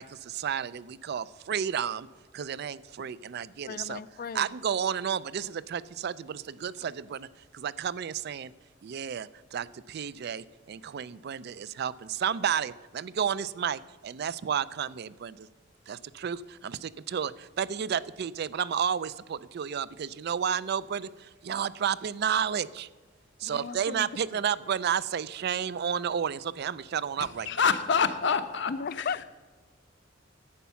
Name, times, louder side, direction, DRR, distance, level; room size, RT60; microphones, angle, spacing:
voice 1, 0.0-2.1 2.3-4.0 4.3-7.3 7.5-8.5 8.8-15.5 15.9-22.9 23.4-27.6, right 8 dB, 55° right, 18 dB, 0.4 m, -32 dB
voice 2, 3.6-4.5 23.4-24.1 24.3-24.4 28.7-29.2, left 5 dB, 50° left, 17 dB, 0.4 m, -36 dB
voice 3, 27.2-29.2, left 6 dB, 65° left, 10 dB, 0.8 m, -27 dB
11.0 x 8.3 x 5.7 m, 1.4 s
head